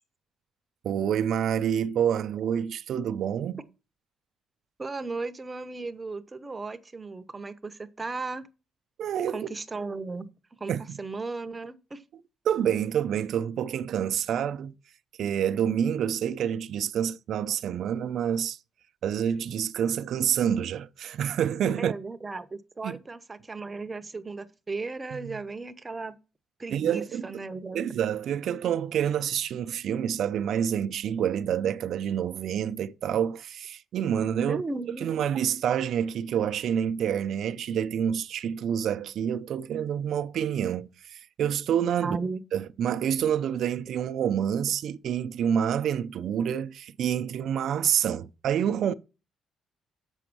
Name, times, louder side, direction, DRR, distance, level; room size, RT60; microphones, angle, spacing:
voice 1, 0.8-3.6 9.0-9.4 10.7-11.0 12.5-14.7 15.2-18.6 19.0-21.9 22.8-23.0 25.1-25.4 26.7-27.3 27.7-34.6 35.0-42.2 42.5-48.9, right 9 dB, 60° right, 0.5 m, -28 dB
voice 2, 4.8-8.5 9.3-10.3 10.6-12.0 21.8-26.1 26.6-27.8 34.5-35.1 42.0-42.4, right 3 dB, 20° right, 0.7 m, -35 dB
7.7 x 6.2 x 6.0 m
cardioid pair, 150°, 0 cm